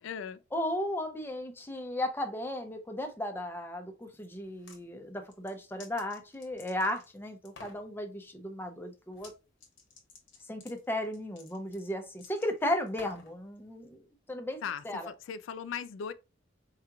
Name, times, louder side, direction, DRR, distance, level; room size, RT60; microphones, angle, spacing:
voice 1, 0.0-0.4 14.6-16.1, left 7 dB, 90° left, 0.3 m, -38 dB
voice 2, 0.5-9.3 10.5-14.0 14.3-15.1, left 1 dB, 10° left, 0.6 m, -35 dB
sound 1, 4.4-4.8 5.3-7.1 7.4-7.8 9.1-9.3 9.6-13.3, left 4 dB, 70° left, 1.1 m, -53 dB
4.7 x 2.9 x 2.3 m
head